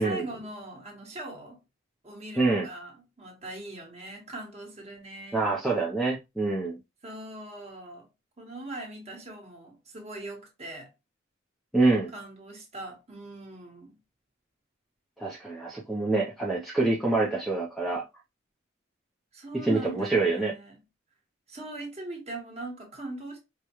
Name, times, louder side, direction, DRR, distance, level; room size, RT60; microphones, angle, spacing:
voice 1, 0.0-1.6 2.0-5.5 7.0-8.1 8.4-10.9 12.1-14.0 19.3-20.7 21.5-23.4, right 2 dB, 30° right, 1.3 m, -41 dB
voice 2, 2.4-2.7 5.3-6.8 11.7-12.1 15.2-18.0 19.6-20.5, right 3 dB, ahead, 0.6 m, -26 dB
4.9 x 2.2 x 3.0 m
head